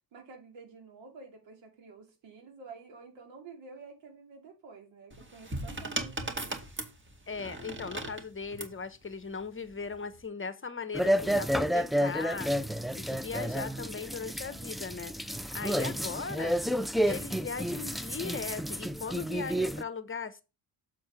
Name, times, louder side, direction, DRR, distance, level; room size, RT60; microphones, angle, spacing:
voice 1, 0.1-6.6, right 4 dB, 85° right, 2.7 m, -50 dB
sound 1, 5.1-8.8 9.8-10.2, right 1 dB, 25° right, 2.2 m, -38 dB
voice 2, 7.3-12.5 12.9-16.6 17.0-20.4, left 5 dB, 30° left, 1.0 m, -38 dB
sound 2, 10.9-19.8, equal, ahead, 0.4 m, -30 dB
7.5 x 4.3 x 4.7 m
supercardioid pair, 65°, 44 cm